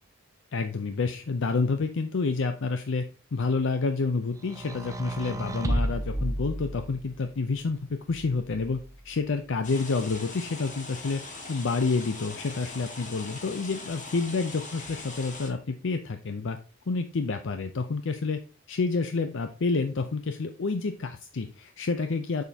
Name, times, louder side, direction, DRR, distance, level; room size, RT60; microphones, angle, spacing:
voice 1, 0.5-8.8 9.0-11.2 11.5-16.6 16.9-18.4 18.7-22.4, left 4 dB, 65° left, 8 dB, 0.6 m, -29 dB
sound 1, 4.5-7.2 8.1-9.0, right 1 dB, 15° right, 0.5 m, -32 dB
sound 2, 9.6-15.5, left 3 dB, 40° left, 1.6 m, -41 dB
7.0 x 6.4 x 2.8 m, 0.37 s
head